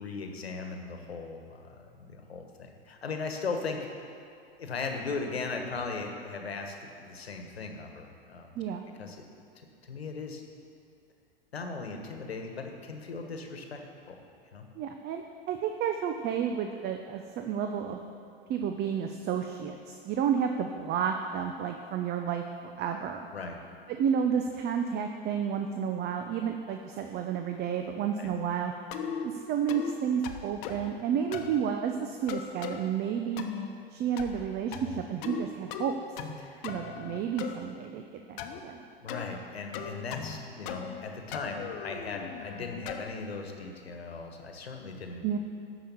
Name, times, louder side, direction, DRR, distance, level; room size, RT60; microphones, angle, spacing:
voice 1, 0.0-4.0 4.6-8.5 9.0-9.2 9.8-10.4 11.5-13.8 14.1-14.2 14.5-14.7 23.3-23.6 28.1-28.3 36.4-36.7 39.0-45.4, left 4 dB, 85° left, 4 dB, 1.3 m, -38 dB
voice 2, 8.6-8.9 14.8-18.0 18.5-23.2 23.9-28.7 29.2-33.4 33.9-35.9 36.6-38.8 45.2-45.4, right 8 dB, 35° right, 5 dB, 0.7 m, -31 dB
sound 1, 28.9-29.3 29.7-29.9 30.2-30.9 31.3-31.6 32.3-32.8 33.4-33.7 34.2-34.5 34.7-35.4 35.7-36.4 36.6-37.5 38.4-38.6 39.1-39.3 39.7-40.4 40.7-41.0 41.3-43.1, left 8 dB, 55° left, 1.0 m, -38 dB
12.5 x 4.9 x 7.0 m, 2.5 s
hypercardioid pair, 90°, 30 cm